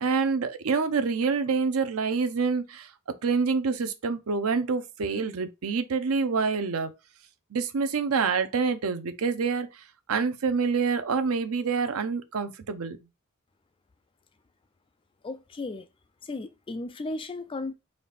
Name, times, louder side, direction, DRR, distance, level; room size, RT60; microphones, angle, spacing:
voice 1, 0.0-2.9 3.2-6.9 7.5-9.7 10.1-13.0, right 5 dB, 80° right, 0.6 m, -26 dB
voice 2, 15.2-15.9 16.2-17.7, left 2 dB, 25° left, 0.3 m, -35 dB
4.0 x 2.5 x 3.3 m
head